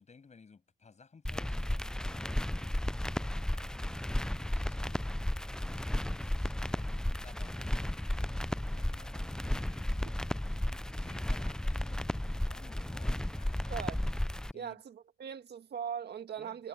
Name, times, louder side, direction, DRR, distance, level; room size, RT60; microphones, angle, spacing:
voice 1, 0.0-10.2 10.7-13.9 14.5-14.8 16.4-16.6, left 5 dB, 35° left, 7.7 m, -58 dB
sound 1, 1.3-14.5, left 1 dB, 5° left, 0.4 m, -34 dB
voice 2, 13.7-14.0 14.5-16.7, right 8 dB, 55° right, 1.9 m, -40 dB
cardioid pair, 90°, 20 cm